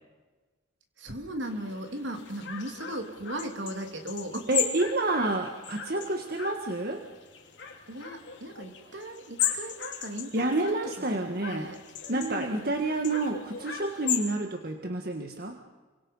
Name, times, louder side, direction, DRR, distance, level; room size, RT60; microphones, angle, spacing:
voice 1, 1.0-4.5 7.9-11.2 11.5-11.8 12.1-12.7, right 1 dB, 70° right, 4 dB, 3.2 m, -37 dB
sound 1, 1.4-14.3, left 9 dB, 65° left, 3.4 m, -37 dB
voice 2, 4.5-7.0 10.3-11.7 12.1-15.6, right 2 dB, 50° right, 4 dB, 1.7 m, -29 dB
29.5 x 24.0 x 5.6 m, 1.3 s
head